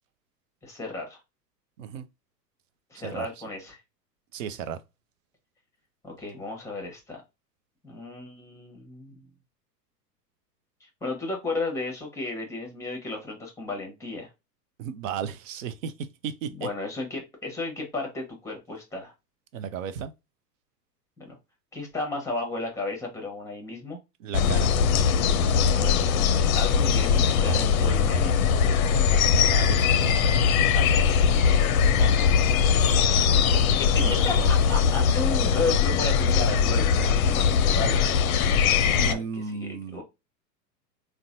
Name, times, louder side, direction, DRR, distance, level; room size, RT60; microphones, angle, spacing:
voice 1, 0.6-1.2 2.9-3.8 6.0-7.2 7.8-9.3 10.8-14.3 16.5-19.1 21.2-21.4 21.7-24.0 25.8-26.1 26.5-28.4 30.6-31.4 32.8-38.2 39.1-40.0, left 3 dB, 5° left, 1.0 m, -34 dB
voice 2, 4.3-4.8 14.8-16.7 19.5-20.1 24.2-24.7 29.5-29.9 31.9-33.0 34.0-34.5 38.9-40.0, right 7 dB, 50° right, 0.6 m, -35 dB
sound 1, 24.3-39.1, left 6 dB, 60° left, 0.5 m, -21 dB
3.9 x 2.2 x 2.5 m
figure-of-eight pair, 105°, 50 cm